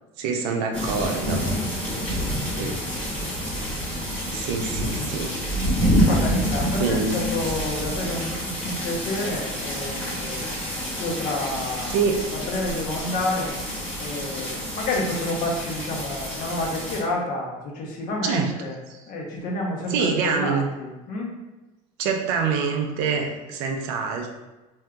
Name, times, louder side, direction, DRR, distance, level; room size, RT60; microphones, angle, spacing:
voice 1, 0.2-1.4 2.5-2.8 4.3-5.3 6.8-7.3 11.9-12.2 18.2-18.5 18.9-19.0 19.9-20.7 22.0-24.3, right 5 dB, 75° right, 3 dB, 0.5 m, -25 dB
sound 1, 0.7-17.0, equal, 10° left, 1.2 m, -28 dB
voice 2, 6.0-10.6 11.0-12.0 12.3-13.5 14.0-18.8 19.1-21.3, left 2 dB, 55° left, -1 dB, 0.8 m, -29 dB
3.5 x 2.7 x 2.2 m, 1.1 s
supercardioid pair, 100°, 17 cm